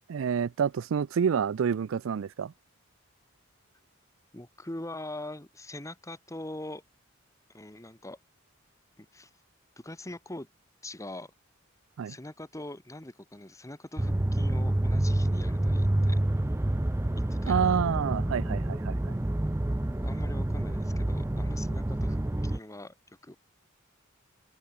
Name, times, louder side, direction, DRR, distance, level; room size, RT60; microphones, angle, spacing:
voice 1, 0.1-2.5 12.0-12.2 17.5-19.2, right 7 dB, 85° right, 0.4 m, -28 dB
voice 2, 4.3-6.8 7.5-8.2 9.0-9.3 9.8-10.5 10.8-11.3 12.1-16.2 17.2-17.6 19.9-22.9 23.2-23.3, left 1 dB, 15° left, 1.9 m, -42 dB
sound 1, 14.0-22.6, right 1 dB, 15° right, 0.5 m, -28 dB
open air
head